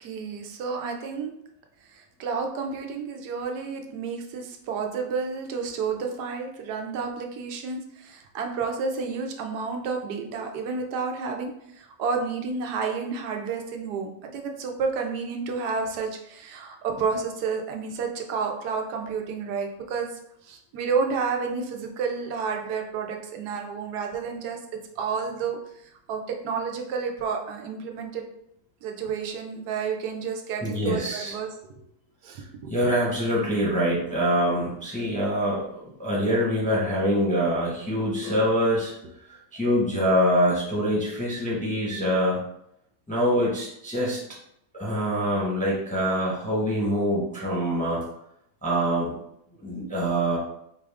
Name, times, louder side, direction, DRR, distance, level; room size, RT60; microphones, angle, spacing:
voice 1, 0.0-1.3 1.9-20.1 20.4-24.6 25.0-25.6 25.8-28.2 28.8-31.5 32.2-32.9, right 5 dB, 90° right, 3 dB, 1.2 m, -30 dB
voice 2, 30.6-31.3 32.7-38.9 39.5-42.4 43.1-44.2 44.7-48.0 48.6-49.1 49.6-50.4, equal, 5° left, -5 dB, 0.6 m, -24 dB
4.5 x 2.4 x 3.4 m, 0.76 s
omnidirectional pair, 1.7 m